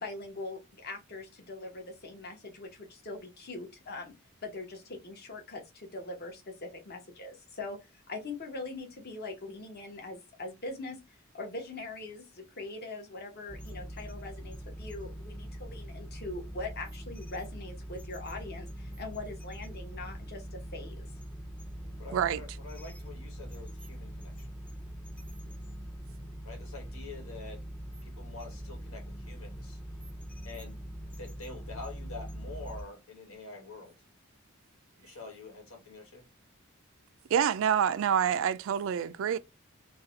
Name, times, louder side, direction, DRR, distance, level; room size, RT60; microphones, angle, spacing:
voice 1, 0.0-4.1 4.4-11.0 11.3-21.1, left 2 dB, 50° left, 1.1 m, -42 dB
control room, 13.5-32.8, equal, 5° left, 0.5 m, -42 dB
voice 2, 22.0-24.5 26.4-27.6 28.0-29.8 30.4-30.8 31.1-33.9 35.0-36.2, left 3 dB, 85° left, 1.6 m, -46 dB
voice 3, 37.3-39.4, right 8 dB, 65° right, 0.3 m, -27 dB
4.0 x 2.3 x 3.9 m
head